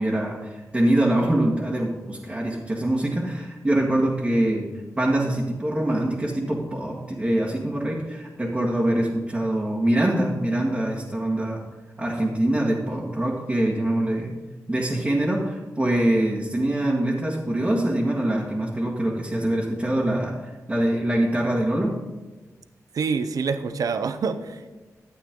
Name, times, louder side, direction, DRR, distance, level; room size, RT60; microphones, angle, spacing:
voice 1, 0.0-4.7 5.0-11.6 12.0-14.3 14.7-21.9, right 1 dB, 20° right, -5 dB, 1.7 m, -24 dB
voice 2, 22.9-24.8, right 5 dB, 75° right, 10 dB, 0.6 m, -26 dB
12.0 x 8.5 x 3.7 m, 1.2 s
cardioid pair, 75°, 6 cm